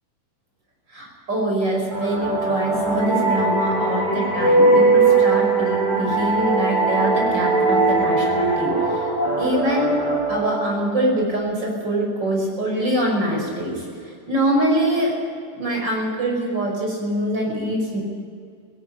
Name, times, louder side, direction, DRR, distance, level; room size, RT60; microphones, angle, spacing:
voice 1, 0.9-9.0 9.4-10.0 10.3-13.8 14.3-15.1 15.5-18.0, right 1 dB, 30° right, 0 dB, 6.1 m, -24 dB
sound 1, 1.9-11.3, right 3 dB, 10° right, 7.7 m, -20 dB
18.0 x 17.0 x 9.9 m, 2.2 s
omnidirectional pair, 3.7 m